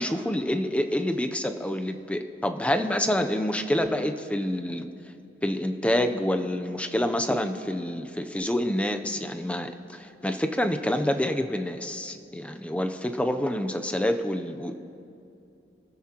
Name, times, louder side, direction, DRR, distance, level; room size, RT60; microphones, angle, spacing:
voice 1, 0.0-4.9 5.4-14.8, left 1 dB, 5° left, 6 dB, 0.6 m, -27 dB
27.0 x 13.5 x 3.0 m, 2.7 s
head